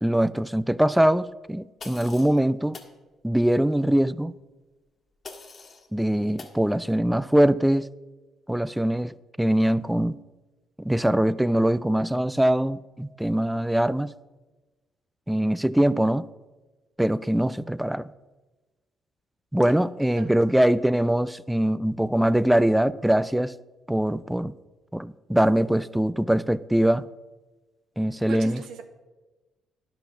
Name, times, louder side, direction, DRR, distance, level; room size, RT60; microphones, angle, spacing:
voice 1, 0.0-2.8 3.2-4.3 5.9-7.9 8.5-10.2 10.8-14.1 15.3-16.2 17.0-18.1 19.5-23.5 23.9-24.5 24.9-27.0 28.0-28.6, right 1 dB, 5° right, 17 dB, 0.3 m, -22 dB
sound 1, 1.8-2.4 2.7-2.9 5.2-5.9 6.4-6.6, left 4 dB, 45° left, 1.6 m, -43 dB
voice 2, 28.3-28.8, right 6 dB, 85° right, 7 dB, 1.1 m, -40 dB
10.5 x 6.0 x 5.7 m, 1.2 s
cardioid pair, 90°, 0 cm